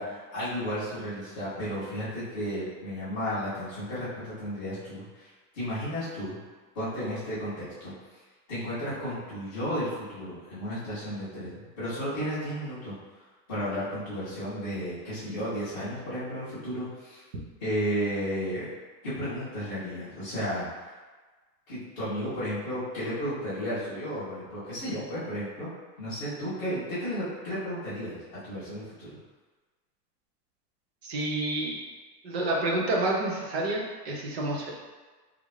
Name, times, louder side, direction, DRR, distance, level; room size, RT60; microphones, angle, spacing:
voice 1, 0.0-6.4 6.7-8.2 8.5-12.9 13.5-17.2 17.6-18.7 19.0-20.9 21.7-25.7 26.0-29.2, equal, 15° left, -22 dB, 0.4 m, -33 dB
voice 2, 31.0-31.9 32.2-34.7, right 2 dB, 40° right, -2 dB, 0.5 m, -29 dB
3.6 x 2.4 x 3.1 m, 1.3 s
supercardioid pair, 180°, 49 cm